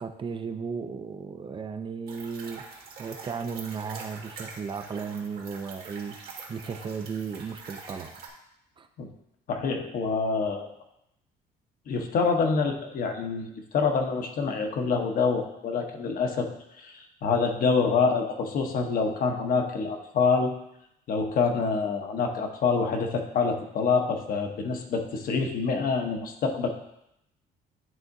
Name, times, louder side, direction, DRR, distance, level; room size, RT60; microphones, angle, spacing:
voice 1, 0.0-2.7 3.0-8.2 8.8-8.9, right 5 dB, 30° right, 8 dB, 0.4 m, -35 dB
sound 1, 2.1-8.3, right 4 dB, 65° right, 1.6 m, -45 dB
voice 2, 9.5-10.7 11.9-16.5 16.8-20.5 21.1-26.7, left 5 dB, 60° left, 4 dB, 0.9 m, -26 dB
10.5 x 3.6 x 2.6 m, 0.80 s
cardioid pair, 110°, 17 cm